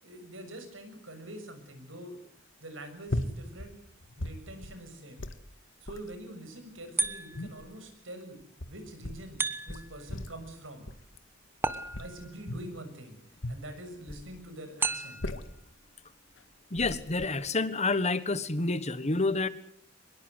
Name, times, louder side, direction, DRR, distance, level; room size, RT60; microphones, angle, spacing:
voice 1, 0.0-2.2 2.6-3.8 4.2-5.3 5.8-8.4 8.7-9.4 9.7-10.9 11.9-13.2 13.5-15.2, right 1 dB, 85° right, 8 dB, 6.9 m, -45 dB
sound 1, 3.1-3.7 4.0-4.8 5.2-5.4 5.9-6.1 6.8-7.8 8.4-9.3 9.7-10.5 10.9-11.2 11.9-12.8 13.4-14.3 14.9-15.7 16.4-16.5 16.8-17.3, left 1 dB, 75° left, 1.9 m, -38 dB
sound 2, 7.0-7.6 9.4-10.0 11.6-12.4 14.8-15.4, right 3 dB, 10° right, 1.3 m, -33 dB
voice 2, 16.7-19.5, left 3 dB, 35° left, 14 dB, 1.4 m, -28 dB
24.0 x 21.5 x 8.2 m, 0.65 s
head